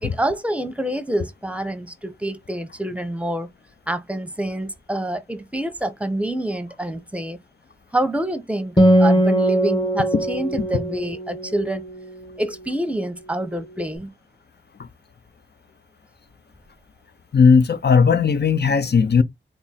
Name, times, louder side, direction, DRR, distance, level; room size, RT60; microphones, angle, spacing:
voice 1, 0.0-3.5 3.9-7.4 7.9-11.8 12.4-14.1, right 1 dB, 5° right, 0.7 m, -27 dB
Acoustic guitar, 8.8-12.5, equal, 25° left, 1.1 m, -20 dB
voice 2, 17.3-19.2, left 5 dB, 60° left, 0.6 m, -16 dB
3.5 x 2.0 x 4.1 m
cardioid pair, 45°, 20 cm